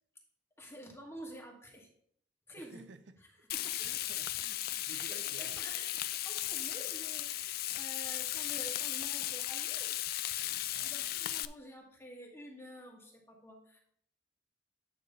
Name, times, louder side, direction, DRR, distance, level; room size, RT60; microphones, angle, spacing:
voice 1, 0.6-1.9 2.5-2.9 3.2-3.9 4.9-10.0 10.8-13.8, equal, 15° left, 1.5 m, -50 dB
voice 2, 2.6-3.2 3.6-5.6 10.7-10.9, right 3 dB, 75° right, 0.5 m, -54 dB
Frying (food), 3.5-11.4, left 14 dB, 55° left, 0.4 m, -36 dB
9.1 x 3.1 x 6.7 m
head